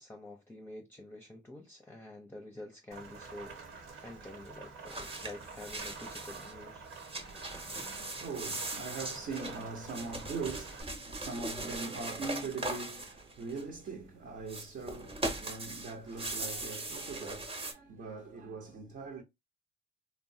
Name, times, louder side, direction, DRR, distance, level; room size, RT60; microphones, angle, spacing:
voice 1, 0.0-3.6 4.0-6.8, left 2 dB, 10° left, 0.6 m, -48 dB
Rain, 2.9-10.8, right 4 dB, 80° right, 1.3 m, -48 dB
sound 1, 4.9-6.5 6.9-13.9 14.4-17.7, right 2 dB, 30° right, 0.9 m, -40 dB
voice 2, 7.6-19.2, right 4 dB, 55° right, 0.9 m, -41 dB
3.0 x 2.1 x 2.7 m
cardioid pair, 90°, 20 cm